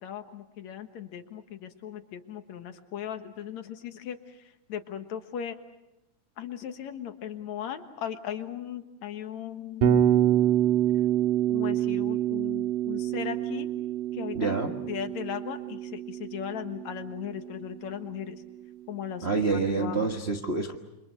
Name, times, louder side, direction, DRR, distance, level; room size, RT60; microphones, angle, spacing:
voice 1, 0.0-4.2 4.7-5.6 6.4-10.0 11.5-13.7 14.1-14.6 14.9-18.4 18.9-20.1, left 9 dB, 70° left, 8 dB, 2.6 m, -37 dB
Bass guitar, 9.8-17.9, right 10 dB, 85° right, 3.3 m, -27 dB
voice 2, 14.3-14.7 19.2-20.8, right 4 dB, 40° right, 2 dB, 0.9 m, -27 dB
29.0 x 25.0 x 6.6 m, 0.95 s
omnidirectional pair, 3.5 m